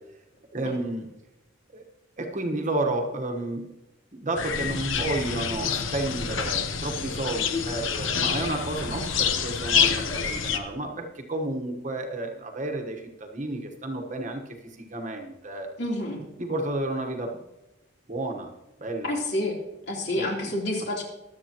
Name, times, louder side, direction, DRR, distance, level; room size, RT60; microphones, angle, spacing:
voice 1, 0.5-1.1 1.7-1.8 2.2-3.7 4.1-15.7 16.4-17.4 18.1-19.2 20.2-20.5, right 2 dB, 35° right, 3 dB, 1.2 m, -31 dB
sound 1, 4.4-10.6, left 6 dB, 75° left, 1.0 m, -27 dB
voice 2, 15.8-16.2 19.0-19.6 19.9-21.0, left 1 dB, 55° left, -1 dB, 3.4 m, -28 dB
23.5 x 8.4 x 3.0 m, 0.99 s
head